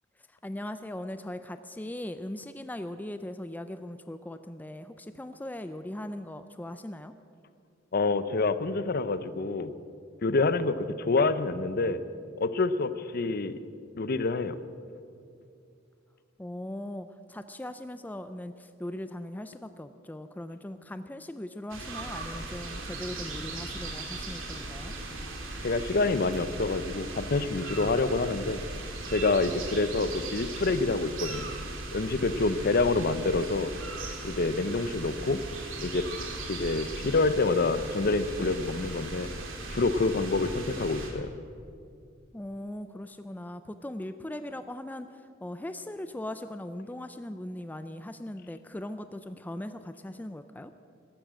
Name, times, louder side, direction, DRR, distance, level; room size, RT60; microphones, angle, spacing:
voice 1, 0.4-7.1 16.4-25.0 42.3-50.7, left 1 dB, 10° left, 10 dB, 0.4 m, -39 dB
voice 2, 7.9-9.7 10.2-12.0 12.4-13.6 14.0-14.6 25.6-28.6 29.1-31.5 31.9-33.7 34.2-35.4 35.8-36.1 36.5-39.3 39.7-41.3, left 3 dB, 50° left, 13 dB, 0.6 m, -27 dB
sound 1, 21.7-41.1, right 2 dB, 90° right, 2.5 m, -38 dB
13.5 x 12.0 x 7.6 m, 2.5 s
head